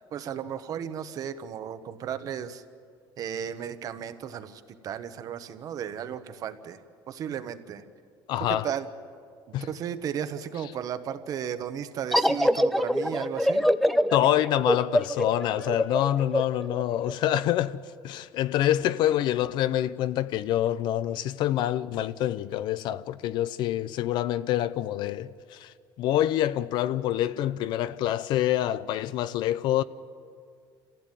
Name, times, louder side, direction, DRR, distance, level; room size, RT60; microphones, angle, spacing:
voice 1, 0.1-2.6 3.2-6.8 7.1-7.8 8.6-8.8 9.7-13.6, right 8 dB, 45° right, 1.1 m, -34 dB
voice 2, 8.3-8.7 9.5-9.7 10.6-10.7 14.1-29.8, left 12 dB, 60° left, 0.6 m, -26 dB
sound 1, 12.1-17.4, equal, ahead, 0.5 m, -25 dB
27.5 x 15.5 x 9.1 m
cardioid pair, 165°, 9 cm